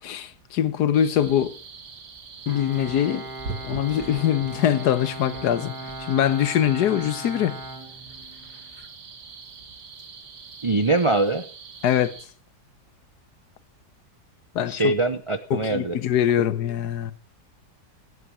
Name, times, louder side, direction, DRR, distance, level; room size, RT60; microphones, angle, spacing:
voice 1, 0.0-1.6 2.5-3.2 3.7-5.7 6.0-7.6 11.8-12.1 14.5-14.9 15.5-17.1, left 10 dB, 80° left, 1.4 m, -23 dB
sound 1, 0.9-12.3, right 4 dB, 90° right, 2.3 m, -42 dB
Bowed string instrument, 2.5-8.6, right 2 dB, 15° right, 1.4 m, -38 dB
voice 2, 10.6-11.5 14.7-16.0, right 2 dB, 55° right, 0.3 m, -23 dB
17.0 x 8.5 x 6.0 m
omnidirectional pair, 1.7 m